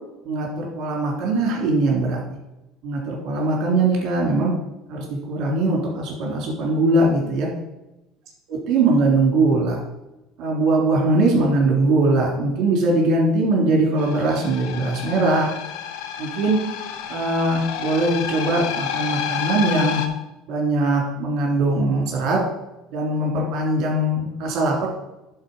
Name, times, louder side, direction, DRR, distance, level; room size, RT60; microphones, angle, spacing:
voice 1, 0.2-2.2 2.8-4.5 4.9-7.5 8.5-9.8 10.4-15.5 16.2-16.6 17.1-20.0 20.5-22.4 22.9-24.9, right 2 dB, 55° right, -1 dB, 2.9 m, -21 dB
sound 1, 14.0-20.1, left 9 dB, 75° left, 0.9 m, -30 dB
10.5 x 4.3 x 5.4 m, 0.96 s
supercardioid pair, 125°, 0 cm